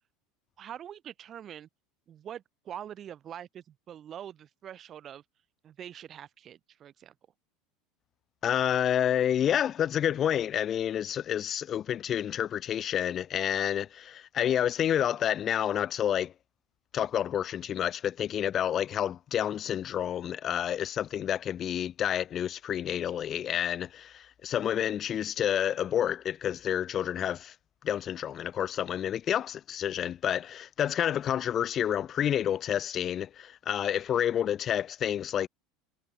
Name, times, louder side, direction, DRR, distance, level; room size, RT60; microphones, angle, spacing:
voice 1, 0.6-1.7 2.1-5.2 5.6-7.1, right 10 dB, 40° right, 3.0 m, -44 dB
voice 2, 8.4-16.3 16.9-27.5 27.8-35.5, left 10 dB, 40° left, 1.0 m, -29 dB
supercardioid pair, 105°, 0 cm